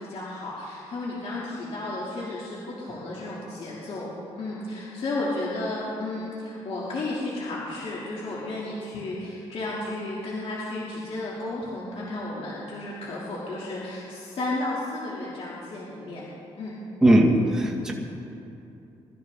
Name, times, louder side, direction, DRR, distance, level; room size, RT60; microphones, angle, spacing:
voice 1, 0.0-4.1 4.4-16.3 16.6-16.7, left 2 dB, 60° left, -6 dB, 3.0 m, -33 dB
voice 2, 17.0-17.9, right 1 dB, 5° right, -2 dB, 2.1 m, -19 dB
22.5 x 13.5 x 3.9 m, 2.8 s
cardioid pair, 75°, 11 cm